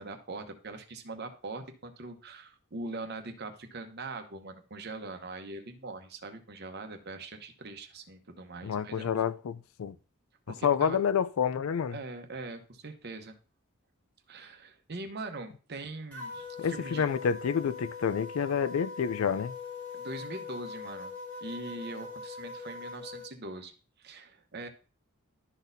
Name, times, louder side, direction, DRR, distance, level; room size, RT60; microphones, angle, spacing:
voice 1, 0.0-9.1 10.5-11.0 11.9-13.4 14.3-17.0 19.9-21.1 21.4-23.7 24.0-24.7, right 2 dB, 50° right, 0.9 m, -42 dB
voice 2, 8.6-9.9 10.6-12.0 16.6-19.5, left 7 dB, 75° left, 0.4 m, -28 dB
sound 1, 16.1-23.3, left 4 dB, 5° left, 1.5 m, -42 dB
12.0 x 4.1 x 2.6 m
head